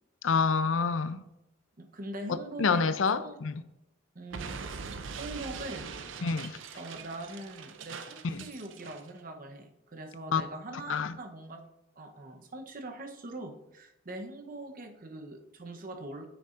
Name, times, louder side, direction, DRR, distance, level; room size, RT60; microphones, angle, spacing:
voice 1, 0.2-1.2 2.6-3.6 6.2-6.5 8.2-8.4 10.3-10.4 10.9-11.2, left 5 dB, 80° left, 0.5 m, -27 dB
voice 2, 1.8-3.3 4.1-4.8 5.1-6.3 6.7-11.6 12.0-16.3, right 2 dB, 45° right, 0.9 m, -42 dB
Explosion, 4.3-9.1, right 5 dB, 75° right, 0.5 m, -42 dB
9.2 x 6.8 x 2.5 m
head